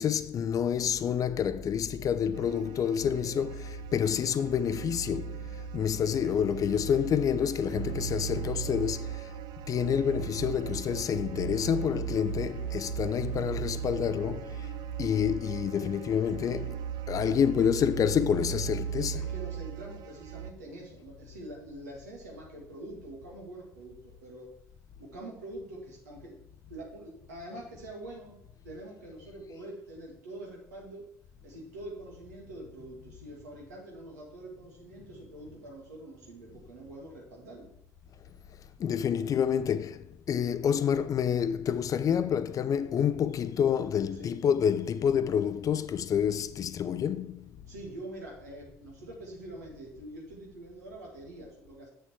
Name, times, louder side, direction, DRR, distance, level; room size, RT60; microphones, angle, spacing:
voice 1, 0.0-9.3 9.7-14.7 15.0-19.3 38.8-47.5, left 8 dB, 40° left, 0.6 m, -28 dB
sound 1, 2.3-20.5, right 9 dB, 55° right, 0.7 m, -37 dB
voice 2, 19.1-24.5 25.0-26.4 26.7-28.4 28.6-31.1 31.4-37.7 44.2-44.3 47.7-51.9, right 1 dB, 75° right, 2.5 m, -45 dB
7.7 x 6.9 x 4.8 m
figure-of-eight pair, 55°, 9 cm